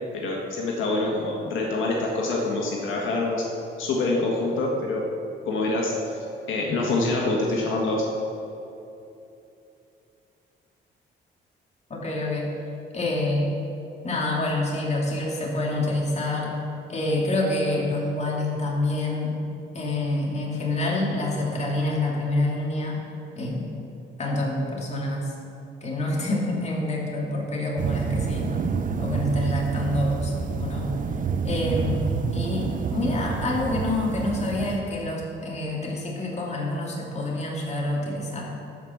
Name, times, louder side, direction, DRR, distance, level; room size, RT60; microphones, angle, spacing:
voice 1, 0.1-3.4 3.8-5.0 5.4-8.0, left 2 dB, 80° left, -2 dB, 1.7 m, -26 dB
voice 2, 11.9-12.5 12.9-13.5 14.0-16.5 16.9-19.4 19.7-23.0 23.3-23.6 24.2-25.3 25.8-28.5 29.0-30.9 31.4-32.1 32.3-38.4, left 1 dB, 35° left, -3 dB, 2.8 m, -27 dB
sound 1, 27.8-34.8, right 5 dB, 40° right, 0.7 m, -28 dB
13.0 x 5.3 x 7.2 m, 2.8 s
cardioid pair, 90°, 20 cm